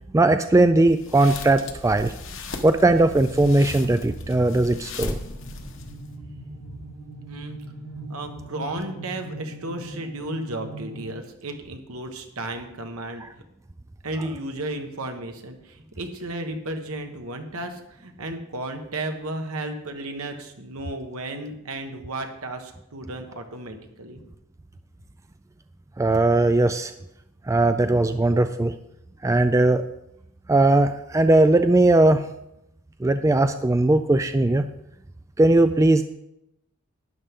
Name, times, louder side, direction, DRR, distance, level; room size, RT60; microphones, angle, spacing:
voice 1, 0.1-2.1 2.6-5.2 26.0-26.9 27.5-28.7 29.2-29.8 30.5-32.2 33.0-34.6 35.4-36.0, right 2 dB, 15° right, 9 dB, 0.3 m, -19 dB
sound 1, 0.9-6.1, left 3 dB, 60° left, 1.2 m, -37 dB
sound 2, 4.9-11.1, right 2 dB, 80° left, 2.9 m, -40 dB
voice 2, 7.3-7.6 8.1-13.2 14.0-24.2, right 1 dB, 75° right, 5 dB, 1.4 m, -34 dB
12.0 x 9.9 x 3.7 m, 0.83 s
head